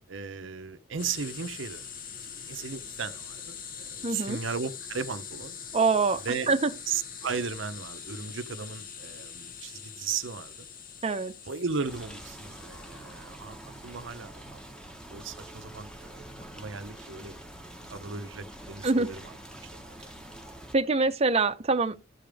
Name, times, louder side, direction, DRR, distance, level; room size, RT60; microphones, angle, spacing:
voice 1, 0.1-1.9 2.2-5.6 6.2-6.5 6.9-10.7 11.4-13.6 13.8-14.6 15.1-17.3 17.9-19.4 19.7-19.9, right 5 dB, 65° right, 0.7 m, -36 dB
sound 1, 1.0-15.5, left 7 dB, 45° left, 1.1 m, -44 dB
voice 2, 4.0-4.4 5.7-6.7 11.0-11.3 18.8-19.1 20.7-22.0, right 3 dB, 30° right, 0.7 m, -25 dB
sound 2, 11.9-20.7, right 1 dB, 5° left, 1.2 m, -46 dB
14.0 x 5.2 x 3.4 m
head